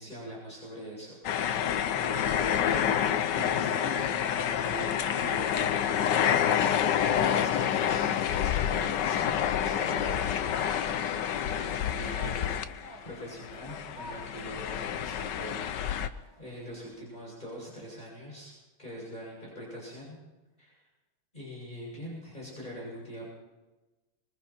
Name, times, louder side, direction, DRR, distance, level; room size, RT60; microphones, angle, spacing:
voice 1, 0.0-1.6 1.9-5.6 6.1-10.8 11.0-12.5 13.0-18.5 18.8-20.2 20.6-20.8 21.3-23.3, equal, 25° left, -5 dB, 7.7 m, -43 dB
sound 1, 1.2-13.1 13.4-16.1, left 9 dB, 85° left, 1.5 m, -28 dB
sound 2, 8.0-17.0, equal, 40° right, 6.0 m, -52 dB
25.0 x 23.5 x 4.5 m, 1.1 s
omnidirectional pair, 1.8 m